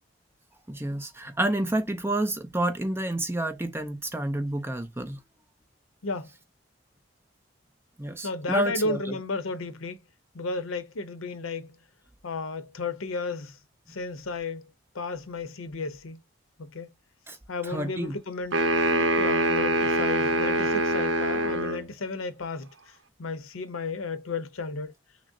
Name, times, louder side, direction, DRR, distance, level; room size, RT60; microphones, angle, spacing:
voice 1, 0.7-5.2 8.0-9.2 17.3-17.4 17.6-18.2, right 1 dB, 10° right, 0.5 m, -29 dB
voice 2, 8.2-10.0 10.3-11.7 12.2-13.6 13.9-14.7 14.9-16.2 16.6-16.9 17.5-22.9 23.2-24.9, left 3 dB, 90° left, 0.7 m, -33 dB
sound 1, 18.5-21.9, right 1 dB, 65° right, 0.7 m, -24 dB
6.0 x 2.0 x 2.6 m
head